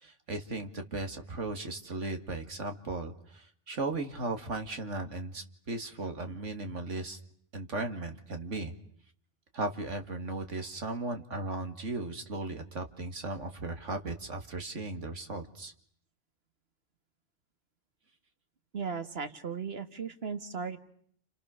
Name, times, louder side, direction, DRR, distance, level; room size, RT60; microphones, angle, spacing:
voice 1, 0.0-7.2 7.5-8.7 9.5-15.7, right 2 dB, 75° right, 6 dB, 2.7 m, -36 dB
voice 2, 18.7-20.8, right 5 dB, 55° right, 9 dB, 2.1 m, -36 dB
30.0 x 29.5 x 6.7 m, 0.65 s
omnidirectional pair, 1.3 m